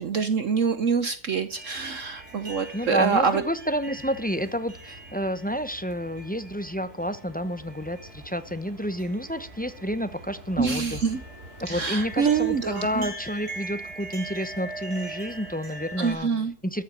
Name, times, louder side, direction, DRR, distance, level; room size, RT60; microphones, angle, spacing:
voice 1, 0.0-3.4 10.6-11.2 11.7-13.1 16.0-16.5, right 6 dB, 55° right, 11 dB, 1.2 m, -25 dB
sound 1, 1.5-16.1, right 1 dB, 75° right, 4.1 m, -42 dB
voice 2, 2.7-11.0 11.7-16.3 16.6-16.8, equal, 10° left, 11 dB, 0.6 m, -29 dB
14.0 x 8.0 x 7.6 m, 0.40 s
omnidirectional pair, 1.7 m